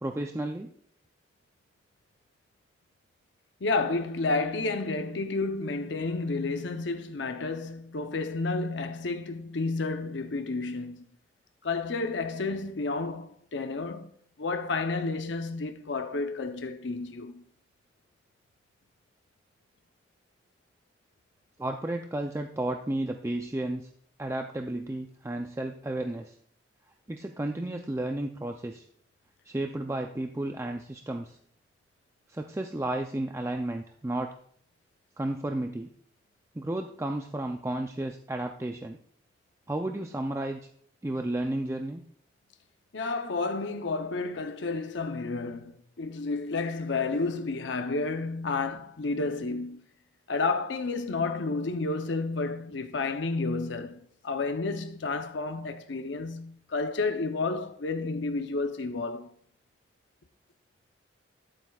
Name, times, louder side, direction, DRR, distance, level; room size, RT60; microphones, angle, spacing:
voice 1, 0.0-0.7 21.6-23.9 24.2-26.4 27.1-28.9 29.5-31.4 32.3-34.3 35.2-35.9 36.5-39.0 39.7-40.6 41.0-42.0, right 1 dB, 15° right, 0.4 m, -32 dB
voice 2, 3.6-11.1 11.6-14.1 14.4-17.4 42.9-49.8 50.3-59.3, left 3 dB, 80° left, 0.7 m, -31 dB
21.0 x 7.7 x 2.3 m
head